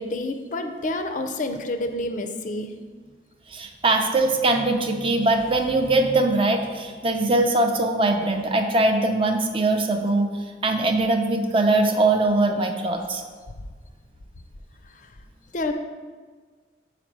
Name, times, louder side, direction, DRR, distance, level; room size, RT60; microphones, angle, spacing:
voice 1, 0.0-2.7 14.9-15.1 15.5-15.7, left 2 dB, 45° left, 6 dB, 0.5 m, -28 dB
voice 2, 3.5-10.3 10.6-13.2, right 2 dB, 30° right, 4 dB, 0.5 m, -21 dB
5.0 x 4.3 x 6.0 m, 1.5 s
head